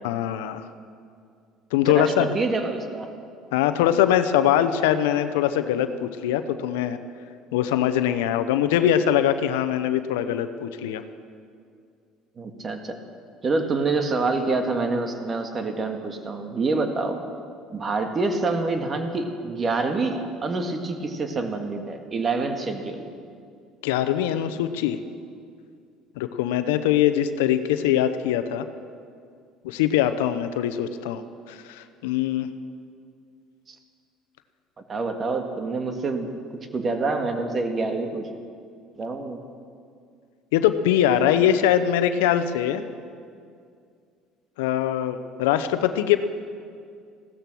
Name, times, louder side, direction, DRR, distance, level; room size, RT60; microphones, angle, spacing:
voice 1, 0.0-0.6 1.7-2.3 3.5-7.0 7.5-11.0 23.8-25.0 26.2-28.7 29.6-32.5 40.5-42.8 44.6-46.2, left 10 dB, 85° left, 10 dB, 0.8 m, -22 dB
voice 2, 1.9-3.1 12.4-13.0 13.4-17.2 17.7-23.1 33.7-33.8 34.9-36.3 36.7-38.3 39.0-39.4, right 3 dB, 35° right, 5 dB, 1.9 m, -26 dB
16.0 x 13.5 x 6.1 m, 2.3 s
supercardioid pair, 85°, 0 cm